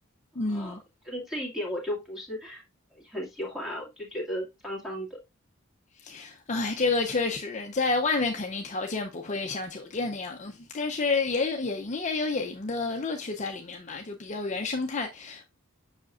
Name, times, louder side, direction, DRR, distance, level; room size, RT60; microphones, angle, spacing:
voice 1, 0.4-0.8 6.0-15.5, left 3 dB, 35° left, 0.5 m, -29 dB
voice 2, 1.0-2.6 2.9-5.2, equal, ahead, 2.1 m, -35 dB
7.2 x 5.7 x 2.4 m
head